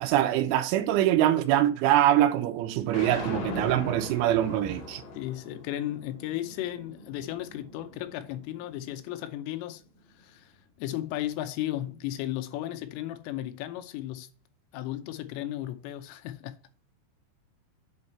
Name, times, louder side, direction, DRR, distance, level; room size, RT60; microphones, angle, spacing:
voice 1, 0.0-5.0, right 12 dB, 85° right, 3.1 m, -24 dB
sound 1, 2.9-9.1, left 2 dB, 55° left, 3.6 m, -40 dB
voice 2, 5.1-9.8 10.2-10.5 10.8-14.3 14.7-16.6, left 13 dB, 90° left, 3.4 m, -35 dB
8.0 x 5.4 x 4.3 m
omnidirectional pair, 5.7 m